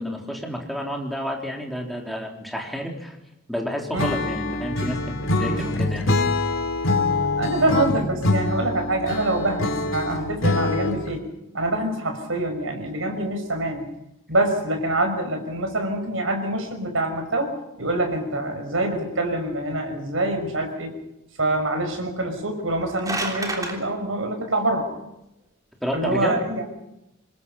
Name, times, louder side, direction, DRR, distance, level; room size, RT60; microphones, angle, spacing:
voice 1, 0.0-3.2 3.5-6.1 25.8-26.4, equal, ahead, 0 dB, 3.7 m, -30 dB
Acoustic guitar / Strum, 4.0-11.2, left 2 dB, 65° left, 3.0 m, -24 dB
voice 2, 7.4-11.2 11.5-13.9 14.3-17.5 17.8-21.0 21.4-24.9 25.9-26.7, right 1 dB, 75° right, 5 dB, 5.7 m, -25 dB
sound 1, 22.6-23.8, right 2 dB, 15° right, 3.3 m, -29 dB
27.0 x 21.0 x 5.7 m, 0.88 s
head